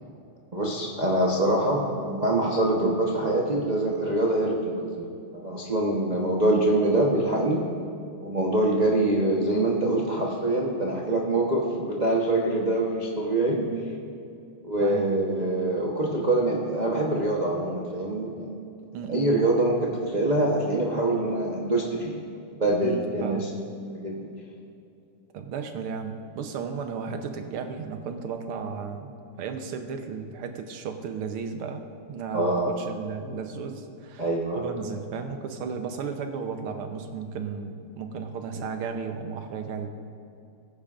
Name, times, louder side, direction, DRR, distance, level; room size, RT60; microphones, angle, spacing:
voice 1, 0.5-7.6 8.2-13.6 14.6-18.5 19.1-22.2 22.6-23.5 23.9-24.3 32.3-32.7 34.2-34.6, right 1 dB, 30° right, -4 dB, 0.7 m, -24 dB
voice 2, 13.5-13.9 14.8-15.1 16.0-16.2 18.9-19.3 22.8-23.5 25.3-29.1 29.4-31.8 32.1-34.3 34.5-39.9, right 5 dB, 85° right, 6 dB, 1.8 m, -34 dB
20.0 x 10.0 x 2.5 m, 2.6 s
omnidirectional pair, 2.3 m